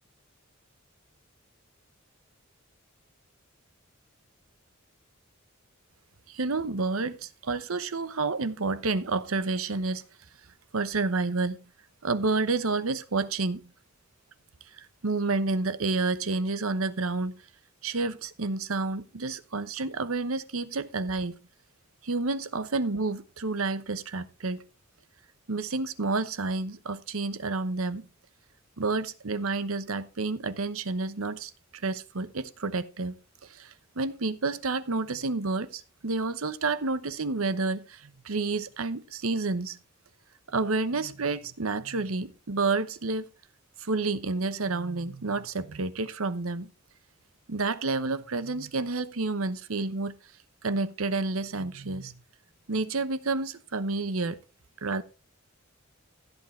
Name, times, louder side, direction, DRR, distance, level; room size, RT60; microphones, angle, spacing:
voice 1, 6.3-10.0 10.7-11.6 12.0-13.6 14.8-17.4 17.8-21.3 22.0-24.6 25.5-28.0 28.8-31.5 31.8-33.1 33.4-39.8 40.5-43.3 43.8-46.7 47.5-50.1 50.6-52.2 52.7-54.4 54.8-55.0, right 3 dB, 85° right, 1.0 m, -29 dB
16.0 x 8.1 x 3.3 m
head